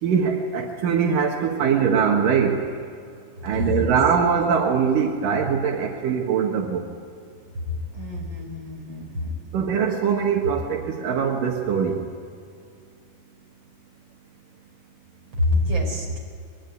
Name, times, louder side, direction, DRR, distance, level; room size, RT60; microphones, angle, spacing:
voice 1, 0.0-2.7 3.4-6.9 9.5-12.1, right 6 dB, 80° right, 1 dB, 3.2 m, -22 dB
voice 2, 3.5-3.9 7.7-9.3 15.4-16.2, left 2 dB, 35° right, 1 dB, 5.7 m, -26 dB
24.5 x 22.5 x 9.6 m, 2.4 s
omnidirectional pair, 3.8 m